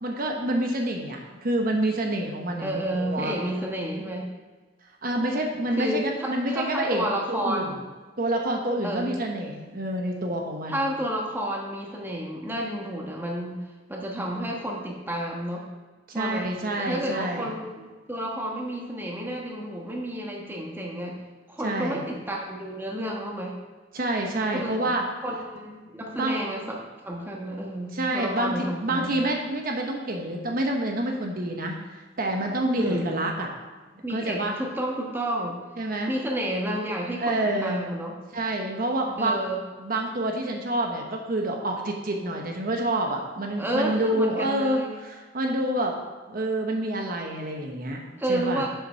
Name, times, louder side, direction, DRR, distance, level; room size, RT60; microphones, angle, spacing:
voice 1, 0.0-3.5 4.8-7.8 8.2-10.9 14.1-14.5 16.1-17.5 21.6-22.0 23.9-25.0 26.2-26.4 27.9-33.5 33.9-34.6 35.8-36.1 37.2-37.8 38.3-39.4 39.8-46.0 46.3-48.6, right 1 dB, 50° right, 2 dB, 1.0 m, -28 dB
voice 2, 2.6-4.3 5.7-7.8 8.8-9.1 10.7-13.6 13.9-15.7 16.1-16.5 16.8-21.2 21.5-23.5 24.5-24.9 25.2-29.2 32.8-33.2 34.0-35.6 36.1-38.2 39.2-39.6 43.6-44.9 48.2-48.7, right 1 dB, 10° right, -1 dB, 1.2 m, -31 dB
7.4 x 5.5 x 5.6 m, 1.3 s
head